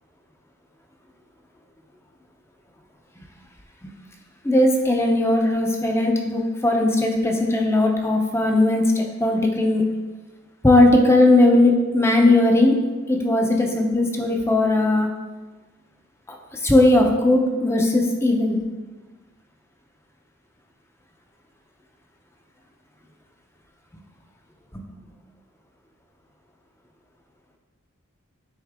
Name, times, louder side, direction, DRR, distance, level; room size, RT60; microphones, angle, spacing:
voice 1, 4.4-9.8 10.6-12.8 13.1-15.1 16.5-18.6 24.7-24.8, left 2 dB, 10° left, 2 dB, 0.7 m, -18 dB
9.8 x 3.8 x 3.6 m, 1.2 s
head